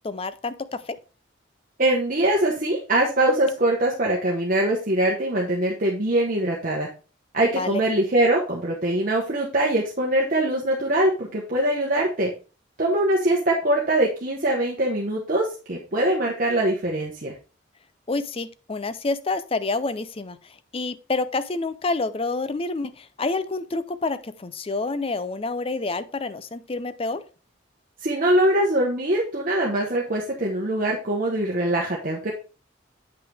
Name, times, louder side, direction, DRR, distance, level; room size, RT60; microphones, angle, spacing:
voice 1, 0.0-0.5 0.9-1.0 7.6-7.8 18.1-27.2, left 3 dB, 30° left, 14 dB, 0.5 m, -28 dB
voice 2, 1.8-6.9 7.3-12.3 12.8-17.3 28.0-32.3, right 1 dB, 45° right, -2 dB, 1.2 m, -23 dB
8.3 x 5.7 x 3.4 m, 0.34 s
head